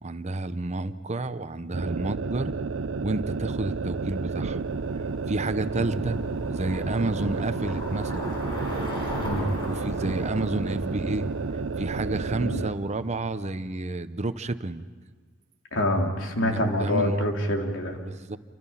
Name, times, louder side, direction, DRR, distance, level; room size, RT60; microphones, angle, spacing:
voice 1, 0.0-2.5 3.0-4.6 5.3-6.2 6.5-8.3 9.7-11.3 11.8-14.8 16.4-17.1 18.0-18.4, right 2 dB, 35° right, 11 dB, 0.8 m, -30 dB
sound 1, 1.7-12.8, right 4 dB, 90° right, 0.6 m, -31 dB
Bicycle, 2.3-13.2, equal, 25° left, 6.4 m, -38 dB
voice 2, 15.7-18.0, left 1 dB, 85° left, 1 dB, 3.2 m, -26 dB
28.5 x 25.0 x 5.7 m, 1.5 s
head